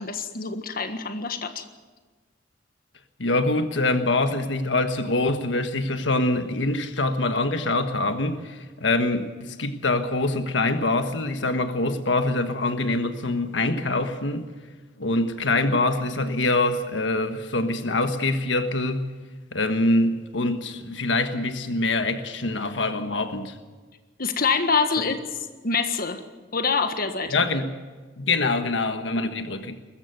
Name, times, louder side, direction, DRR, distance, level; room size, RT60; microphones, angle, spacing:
voice 1, 0.0-1.6 24.2-25.2 25.6-26.2 26.5-27.4, left 4 dB, 55° left, 8 dB, 1.6 m, -25 dB
voice 2, 3.2-14.5 15.0-19.1 19.5-23.6 27.3-27.7 28.2-29.8, left 2 dB, 90° left, 8 dB, 1.5 m, -24 dB
21.0 x 15.0 x 9.2 m, 1.4 s
head